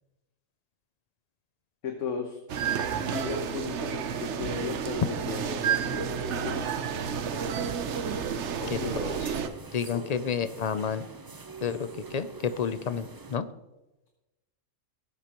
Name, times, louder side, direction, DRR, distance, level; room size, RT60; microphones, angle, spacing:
voice 1, 1.8-2.4 3.0-6.8 8.6-9.0 9.9-10.0, left 5 dB, 70° left, 3 dB, 1.5 m, -36 dB
sound 1, 2.5-9.5, right 7 dB, 65° right, 1.0 m, -31 dB
sound 2, 7.3-13.4, right 4 dB, 30° right, 0.4 m, -46 dB
voice 2, 8.7-9.2 9.7-11.1 11.6-13.5, left 6 dB, 50° left, 12 dB, 0.4 m, -30 dB
18.0 x 8.2 x 3.0 m, 1.0 s
omnidirectional pair, 1.3 m